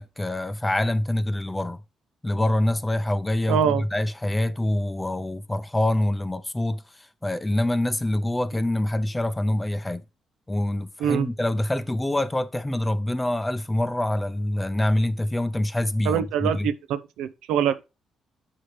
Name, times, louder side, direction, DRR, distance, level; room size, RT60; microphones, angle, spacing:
voice 1, 0.0-1.8 2.2-10.0 10.5-16.7, left 1 dB, 15° left, 0.6 m, -25 dB
voice 2, 3.5-3.8 11.0-11.3 16.1-17.8, right 8 dB, 90° right, 0.6 m, -24 dB
5.7 x 5.0 x 4.7 m
cardioid pair, 90°, 0 cm